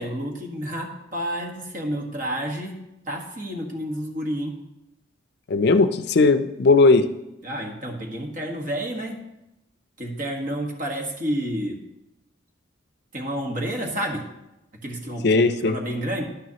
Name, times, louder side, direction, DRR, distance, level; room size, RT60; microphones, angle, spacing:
voice 1, 0.0-2.8 3.1-4.6 7.4-9.2 10.0-11.8 13.1-14.2 14.8-16.2, equal, 45° right, 1 dB, 1.5 m, -30 dB
voice 2, 5.5-7.1 15.2-15.8, left 3 dB, 60° left, 10 dB, 0.5 m, -17 dB
11.5 x 9.3 x 2.9 m, 0.91 s
head